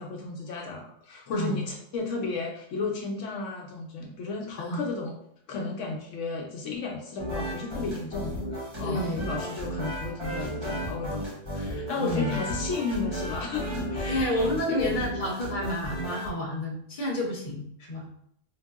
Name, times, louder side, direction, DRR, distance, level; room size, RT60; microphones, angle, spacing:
voice 1, 0.0-5.1 5.5-14.9, left 4 dB, 80° left, 0 dB, 1.0 m, -34 dB
sound 1, 7.2-16.3, equal, 25° right, 0.9 m, -34 dB
voice 2, 8.8-9.2 12.0-12.4 14.1-18.1, left 1 dB, 45° left, -3 dB, 1.1 m, -30 dB
4.6 x 2.6 x 2.3 m, 0.71 s
omnidirectional pair, 1.3 m